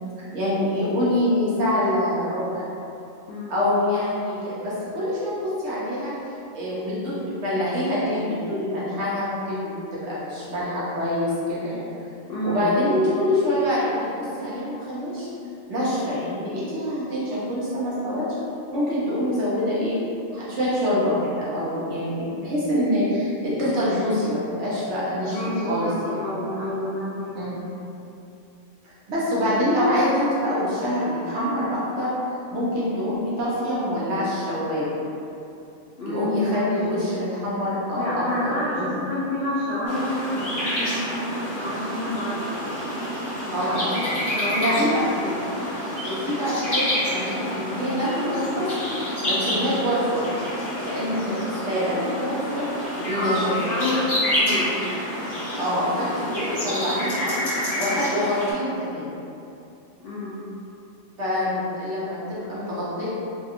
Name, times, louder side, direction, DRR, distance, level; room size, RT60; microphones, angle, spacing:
voice 1, 0.3-2.7 3.5-6.1 6.5-11.8 12.4-15.3 15.7-18.3 18.7-20.0 20.3-26.2 27.3-27.6 29.1-32.1 32.5-35.0 36.0-38.9 43.5-44.2 44.6-45.0 46.0-48.7 49.2-50.2 50.8-51.4 51.6-52.7 53.0-53.5 55.6-57.3 57.8-59.1 61.2-63.1, left 1 dB, 65° right, -9 dB, 1.0 m, -25 dB
voice 2, 12.3-12.6 25.2-27.4 36.0-36.7 37.9-42.5 43.4-44.8 45.2-45.4 53.1-54.7 60.0-60.4, left 1 dB, 60° left, -10 dB, 0.6 m, -29 dB
sound 1, 39.9-58.5, equal, 45° left, 1.0 m, -28 dB
2.7 x 2.6 x 2.4 m, 2.7 s
omnidirectional pair, 1.4 m